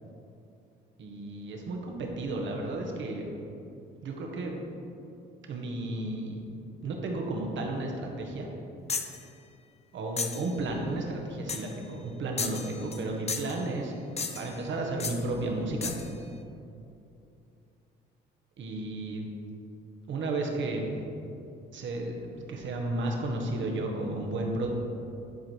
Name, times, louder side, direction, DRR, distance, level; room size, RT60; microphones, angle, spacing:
voice 1, 1.0-3.3 4.0-4.6 5.5-6.4 6.8-8.5 9.9-13.9 14.3-15.9 18.6-19.3 20.1-20.9 21.7-24.7, right 2 dB, 70° right, 1 dB, 1.5 m, -33 dB
sound 1, 8.9-9.2 10.2-10.5 11.5-11.8 12.4-13.0 13.3-13.6 14.2-14.6 15.0-15.2 15.8-16.1, left 5 dB, 35° left, 0.7 m, -34 dB
11.0 x 4.7 x 4.6 m, 2.7 s
cardioid pair, 90°, 20 cm